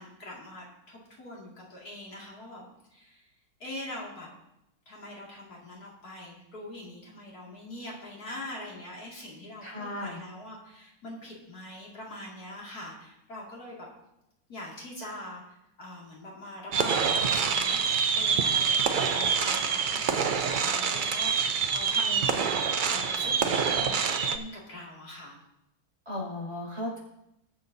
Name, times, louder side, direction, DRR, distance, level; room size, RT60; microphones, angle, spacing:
voice 1, 0.0-2.6 2.9-3.3 3.6-4.3 4.9-13.9 14.5-25.3, left 1 dB, 70° left, -4 dB, 2.8 m, -43 dB
voice 2, 9.6-10.2 26.1-27.0, left 1 dB, 15° right, -5 dB, 5.3 m, -35 dB
sound 1, 16.7-24.4, right 6 dB, 80° right, 0.4 m, -26 dB
21.5 x 7.6 x 2.7 m, 0.85 s
omnidirectional pair, 1.7 m